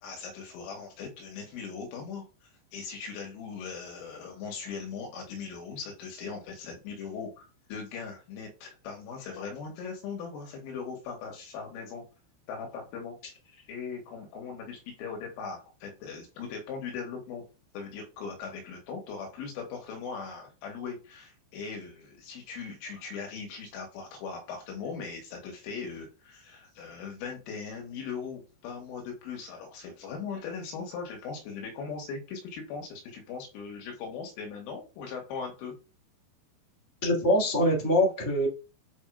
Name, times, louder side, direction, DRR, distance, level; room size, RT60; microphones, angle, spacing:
voice 1, 0.0-12.0 12.5-13.2 13.7-17.4 17.7-35.7, left 5 dB, 90° left, 1 dB, 4.2 m, -39 dB
voice 2, 37.0-38.5, left 1 dB, 10° left, -3 dB, 1.2 m, -24 dB
8.5 x 4.4 x 2.5 m, 0.31 s
omnidirectional pair, 5.6 m